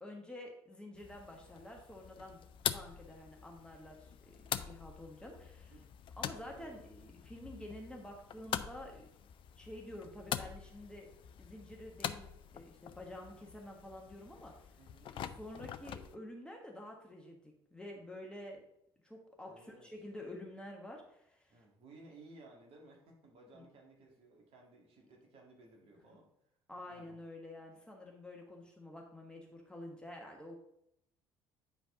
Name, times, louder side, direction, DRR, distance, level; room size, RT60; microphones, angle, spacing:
voice 1, 0.0-5.7 6.2-9.1 9.6-11.1 11.4-12.3 12.5-14.7 15.1-18.6 19.0-21.6 23.5-23.6 26.0-26.2 26.7-30.6, left 1 dB, 5° left, 0 dB, 1.5 m, -49 dB
sound 1, 0.9-16.2, left 9 dB, 40° left, 0.5 m, -44 dB
voice 2, 14.8-15.1 19.5-19.9 21.5-26.3 26.9-27.2, right 2 dB, 50° right, -1 dB, 2.0 m, -58 dB
8.9 x 5.0 x 3.8 m, 0.75 s
figure-of-eight pair, 55°, 13 cm